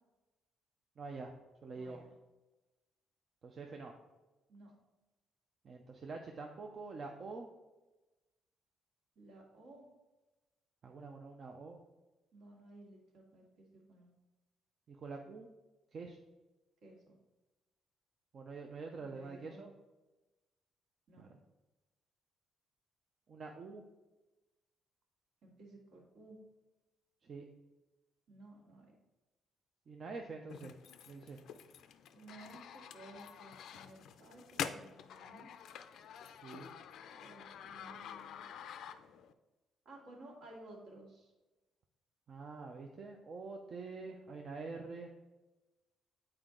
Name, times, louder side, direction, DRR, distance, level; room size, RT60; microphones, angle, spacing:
voice 1, 1.0-1.3 1.6-2.0 3.4-3.9 5.6-7.5 10.8-11.8 14.9-15.5 15.9-16.2 18.3-19.7 21.2-21.4 23.3-23.8 27.2-27.4 29.9-30.7 31.1-31.4 36.4-36.7 42.3-45.1, right 4 dB, 40° right, 2 dB, 0.5 m, -46 dB
voice 2, 1.8-2.1 4.5-4.7 9.2-9.9 12.3-14.1 16.8-17.2 19.0-19.7 21.1-21.3 25.4-26.4 28.3-28.9 32.1-35.5 37.2-38.4 39.9-41.3, right 2 dB, 60° right, -1 dB, 1.8 m, -56 dB
sound 1, 30.5-39.3, left 8 dB, 65° left, 0.4 m, -47 dB
7.7 x 4.4 x 3.8 m, 1.1 s
cardioid pair, 155°, 0 cm